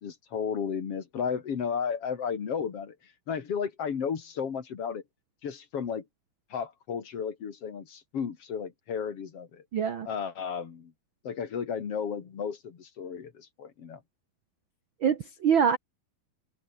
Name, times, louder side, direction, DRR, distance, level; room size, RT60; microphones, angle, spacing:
voice 1, 0.0-5.0 5.4-6.0 6.5-9.6 10.0-10.9 11.2-14.0, left 7 dB, 45° left, 2.8 m, -33 dB
voice 2, 9.7-10.1 15.0-15.8, right 7 dB, 90° right, 1.1 m, -24 dB
omnidirectional pair, 4.2 m